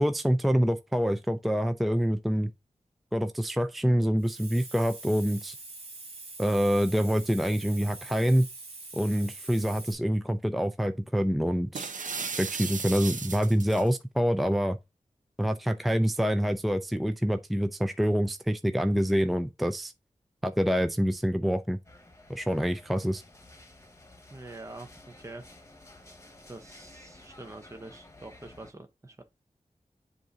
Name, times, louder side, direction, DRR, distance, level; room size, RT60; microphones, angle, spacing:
voice 1, 0.0-2.5 3.1-5.5 6.4-8.5 8.9-11.9 12.4-14.8 15.4-19.9 20.4-21.8 22.3-23.2, equal, ahead, 0.5 m, -26 dB
Hiss, 4.2-9.9, right 2 dB, 50° right, 1.4 m, -44 dB
sound 1, 11.7-13.9, right 5 dB, 85° right, 0.7 m, -35 dB
sound 2, 21.8-28.7, left 2 dB, 20° left, 1.3 m, -53 dB
voice 2, 24.3-25.5 26.5-29.2, right 2 dB, 25° right, 0.8 m, -45 dB
7.5 x 2.7 x 5.0 m
wide cardioid pair, 70°, 13 cm